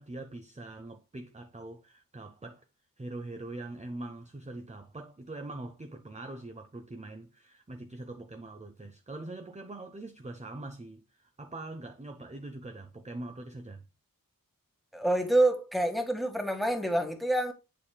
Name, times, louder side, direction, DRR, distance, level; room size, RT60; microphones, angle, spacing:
voice 1, 0.0-2.6 3.0-13.8, right 2 dB, 20° right, 0.7 m, -43 dB
voice 2, 14.9-17.5, right 1 dB, ahead, 1.6 m, -27 dB
10.0 x 4.2 x 2.2 m
wide cardioid pair, 50°, 35 cm